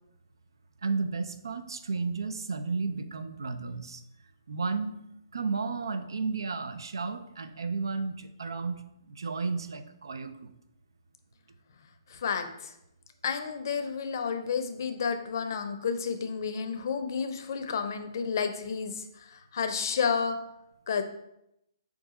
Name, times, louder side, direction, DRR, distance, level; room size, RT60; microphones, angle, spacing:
voice 1, 0.8-4.0 4.5-5.0 5.3-8.8 9.1-10.5, right 4 dB, 75° right, 10 dB, 0.4 m, -33 dB
voice 2, 12.1-12.7 13.2-19.0 19.3-20.4 20.9-21.0, left 6 dB, 55° left, 7 dB, 0.5 m, -31 dB
4.7 x 2.4 x 4.0 m, 0.81 s
figure-of-eight pair, 135°, 2 cm